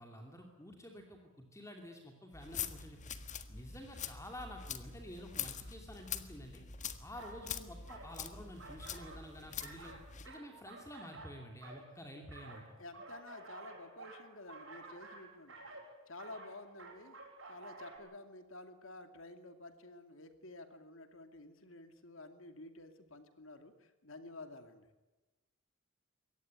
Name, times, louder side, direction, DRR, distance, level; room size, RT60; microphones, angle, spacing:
voice 1, 0.0-3.0 3.5-6.7 7.0-10.0 10.2-12.8, equal, 15° left, 3 dB, 2.7 m, -50 dB
sound 1, 2.3-10.3, left 8 dB, 35° left, 1.6 m, -44 dB
sound 2, 7.1-7.4 7.9-8.1 8.6-9.3 9.6-11.9 12.3-18.0, right 3 dB, 65° right, 7.4 m, -52 dB
voice 2, 12.8-15.8 16.1-17.2 17.5-24.9, left 2 dB, 65° left, 8 dB, 2.5 m, -51 dB
23.5 x 18.0 x 9.6 m, 1.1 s
head